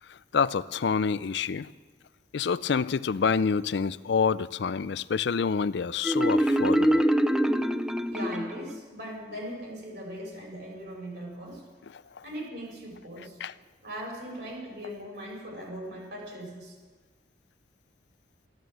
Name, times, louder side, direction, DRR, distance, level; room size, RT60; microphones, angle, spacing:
voice 1, 0.1-1.7 2.3-7.0 13.4-13.5, left 5 dB, 65° left, 16 dB, 0.4 m, -27 dB
Marimba xylophone, 6.0-8.8, equal, 5° right, 0.5 m, -24 dB
voice 2, 8.1-11.6 12.2-13.4 13.8-16.8, equal, 60° right, -1 dB, 5.7 m, -39 dB
14.0 x 13.0 x 7.7 m, 1.4 s
head